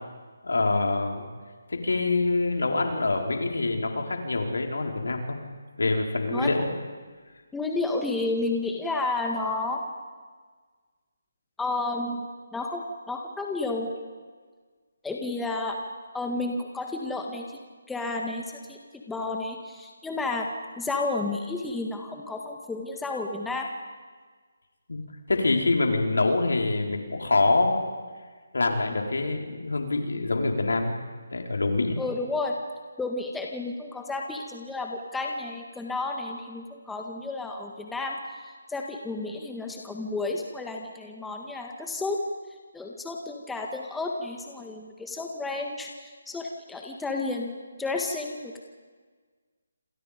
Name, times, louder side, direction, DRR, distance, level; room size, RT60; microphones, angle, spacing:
voice 1, 0.4-1.3 1.7-5.4 5.8-6.7 24.9-25.0 25.3-27.8 28.5-31.0 31.3-32.0, left 3 dB, 80° left, 2 dB, 4.6 m, -25 dB
voice 2, 7.5-9.9 11.6-12.3 12.5-13.9 15.0-15.8 16.1-17.6 17.9-18.8 19.1-20.5 20.8-23.7 32.0-32.6 33.0-42.2 42.7-48.6, left 3 dB, 5° left, 1 dB, 1.7 m, -31 dB
28.0 x 27.5 x 5.2 m, 1.5 s
figure-of-eight pair, 160°, 0 cm